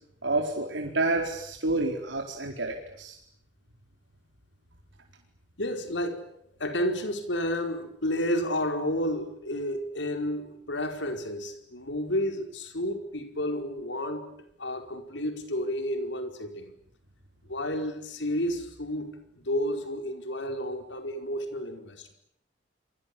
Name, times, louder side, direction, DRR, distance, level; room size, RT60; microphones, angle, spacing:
voice 1, 0.2-3.2, right 2 dB, 90° right, 1 dB, 4.3 m, -29 dB
voice 2, 5.6-6.2 6.6-14.3 14.6-16.7 17.5-22.1, left 1 dB, 85° left, 6 dB, 4.9 m, -31 dB
28.5 x 24.0 x 8.6 m, 0.73 s
head